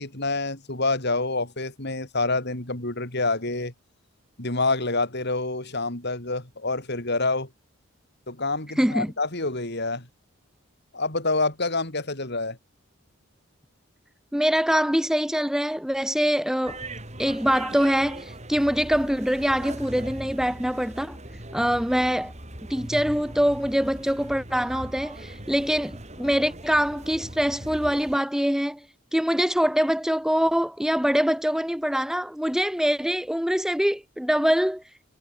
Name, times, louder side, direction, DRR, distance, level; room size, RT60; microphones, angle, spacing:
voice 1, 0.0-3.7 4.4-7.5 8.3-10.1 10.9-12.6, left 3 dB, 55° left, 4.9 m, -27 dB
voice 2, 8.8-9.1 14.3-16.8 17.2-21.2 21.5-22.3 22.7-28.8 29.1-34.8, equal, 5° right, 1.1 m, -24 dB
sound 1, 16.6-28.2, right 1 dB, 35° right, 6.7 m, -40 dB
head